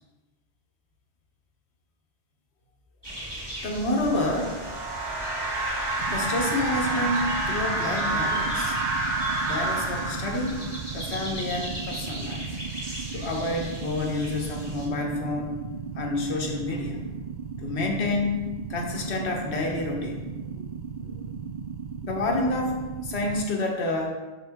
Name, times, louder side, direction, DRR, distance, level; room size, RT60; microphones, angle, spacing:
sound 1, 3.0-14.9, equal, 20° right, 2.1 m, -39 dB
voice 1, 3.6-4.6 6.1-8.8 9.4-10.6 10.9-12.5 13.1-15.6 15.9-17.0 17.6-20.2 20.6-20.7 21.0-21.1 22.0-24.2, left 2 dB, 85° left, 1 dB, 1.4 m, -29 dB
sound 2, 3.9-10.9, right 2 dB, 80° right, 1.4 m, -29 dB
sound 3, 6.0-23.5, right 6 dB, 55° right, 0.6 m, -36 dB
7.3 x 6.4 x 3.6 m, 1.2 s
omnidirectional pair, 1.1 m